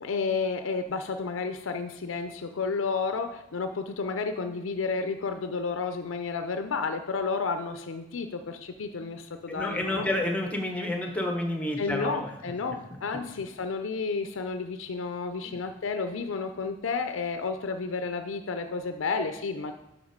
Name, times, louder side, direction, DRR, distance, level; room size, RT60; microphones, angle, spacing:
voice 1, 0.0-10.1 11.8-19.7, left 4 dB, 80° left, 7 dB, 0.5 m, -31 dB
voice 2, 9.5-12.3 15.4-15.6, left 1 dB, 5° left, 3 dB, 1.0 m, -30 dB
7.1 x 6.2 x 5.1 m, 0.93 s
head